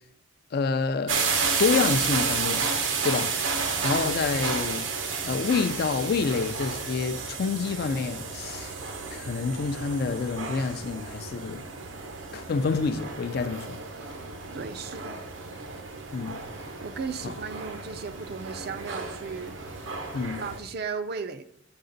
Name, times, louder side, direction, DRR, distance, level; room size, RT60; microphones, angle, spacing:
voice 1, 0.5-2.8 3.0-3.4 3.8-4.9 5.2-8.7 9.1-11.6 12.3-13.8 16.1-16.4 20.1-20.4, left 4 dB, 55° left, 0.4 m, -28 dB
sound 1, 1.1-20.6, right 5 dB, 85° right, 0.8 m, -32 dB
voice 2, 14.5-15.2 16.8-19.6 20.3-21.4, right 5 dB, 55° right, 0.5 m, -35 dB
7.8 x 5.0 x 3.9 m
head